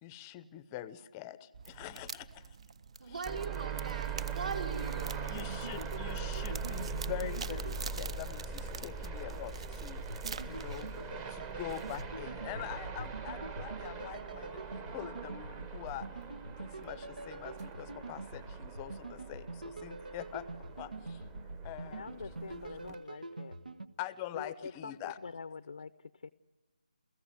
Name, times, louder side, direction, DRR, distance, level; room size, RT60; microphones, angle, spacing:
voice 1, 0.0-2.4 5.3-10.0 10.4-10.9 11.3-16.1 16.6-20.5 20.8-21.2 21.6-22.1 24.0-25.2, left 13 dB, 15° left, 16 dB, 0.7 m, -44 dB
sound 1, 1.5-12.3, right 6 dB, 40° right, 0.7 m, -47 dB
voice 2, 3.0-5.4, right 4 dB, 65° right, 0 dB, 5.5 m, -40 dB
sound 2, 3.3-22.9, right 5 dB, 15° right, 1.0 m, -41 dB
sound 3, 5.3-8.7 10.0-23.9, right 2 dB, 85° right, 1.3 m, -45 dB
voice 3, 21.9-23.6 24.3-26.3, left 5 dB, 60° left, 14 dB, 0.6 m, -45 dB
28.5 x 16.0 x 7.8 m, 1.4 s
figure-of-eight pair, 160°, 5 cm